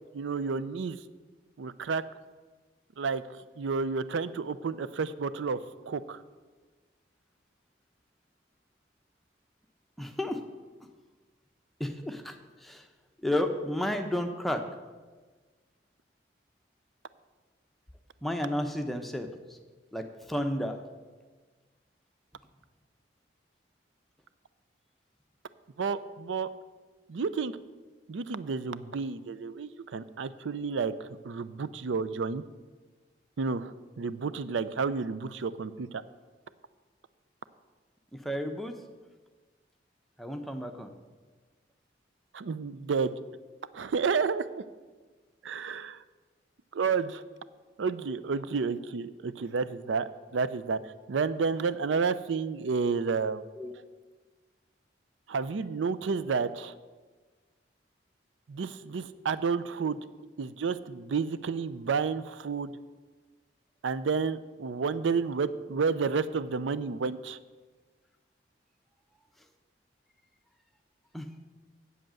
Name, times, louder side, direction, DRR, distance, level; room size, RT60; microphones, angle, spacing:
voice 1, 0.1-1.0 1.6-2.0 3.0-3.2 3.6-5.6 5.9-6.2 25.8-26.5 27.1-27.5 28.1-32.4 33.4-36.0 42.3-43.1 43.7-44.6 45.4-46.0 46.7-47.2 47.8-50.8 51.1-53.4 55.3-56.7 58.5-60.0 60.4-62.7 63.8-67.4, right 5 dB, 85° right, 15 dB, 0.5 m, -30 dB
voice 2, 10.0-10.4 11.8-12.9 13.2-14.7 18.2-19.6 19.9-20.8 38.1-38.8 40.2-40.9 53.6-53.7 71.1-71.3, left 1 dB, ahead, 5 dB, 0.7 m, -32 dB
8.2 x 7.7 x 7.6 m, 1.3 s
head